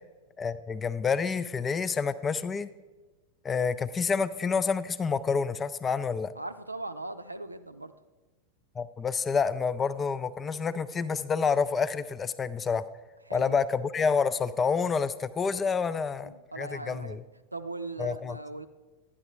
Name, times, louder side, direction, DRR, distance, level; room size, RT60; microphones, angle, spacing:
voice 1, 0.4-2.7 3.4-6.3 8.8-12.8 13.3-17.2 18.0-18.4, left 5 dB, 20° left, 15 dB, 0.4 m, -28 dB
voice 2, 6.4-7.9 13.3-13.6 16.2-17.2 17.5-18.7, right 2 dB, 85° right, 10 dB, 0.5 m, -39 dB
11.5 x 9.8 x 3.1 m, 1.2 s
figure-of-eight pair, 90°, 0 cm